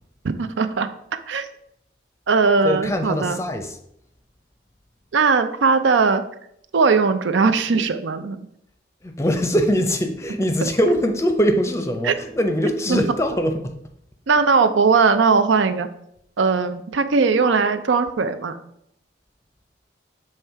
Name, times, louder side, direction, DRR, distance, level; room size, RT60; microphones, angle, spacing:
voice 1, 0.4-1.5 2.3-3.4 5.1-6.3 6.7-8.4 10.6-10.7 12.0-12.1 12.9-13.0 14.3-15.9 16.4-18.6, right 4 dB, 85° right, 10 dB, 0.5 m, -19 dB
voice 2, 2.6-3.8 9.0-13.7, equal, 15° left, 6 dB, 0.5 m, -22 dB
7.1 x 3.3 x 4.6 m, 0.74 s
head